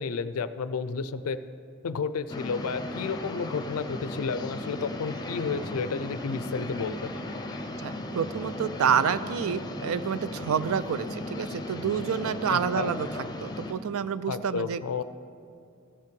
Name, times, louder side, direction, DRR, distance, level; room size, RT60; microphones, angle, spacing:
voice 1, 0.0-1.4 1.8-7.0 12.5-13.0 14.3-15.0, left 5 dB, 75° left, 13 dB, 0.4 m, -31 dB
sound 1, 2.3-13.7, left 1 dB, 20° left, 0.7 m, -36 dB
voice 2, 7.8-13.1 13.4-15.0, right 7 dB, 70° right, 15 dB, 0.4 m, -28 dB
14.5 x 5.5 x 5.2 m, 2.4 s
head